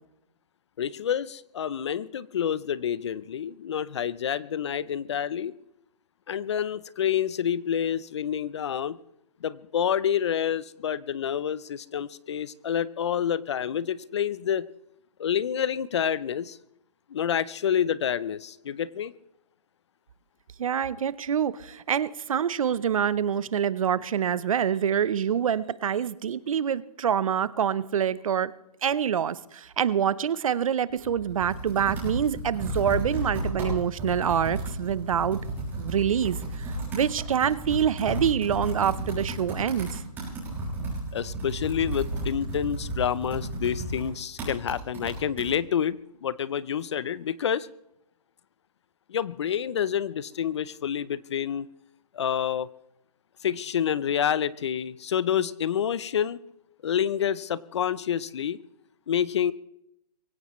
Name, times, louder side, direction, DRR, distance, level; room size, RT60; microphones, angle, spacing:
voice 1, 0.8-5.5 6.3-9.0 9.4-14.7 15.2-16.6 17.1-19.1 41.1-47.7 49.1-51.7 52.1-52.7 53.4-56.4 56.8-58.6 59.1-59.5, left 9 dB, 45° left, 20 dB, 0.6 m, -28 dB
voice 2, 20.6-28.5 28.8-35.4 35.8-40.0, right 8 dB, 55° right, 18 dB, 0.8 m, -26 dB
Computer keyboard, 30.9-45.5, right 1 dB, 10° right, 6.2 m, -33 dB
23.5 x 17.0 x 3.1 m, 0.79 s
hypercardioid pair, 160°, 21 cm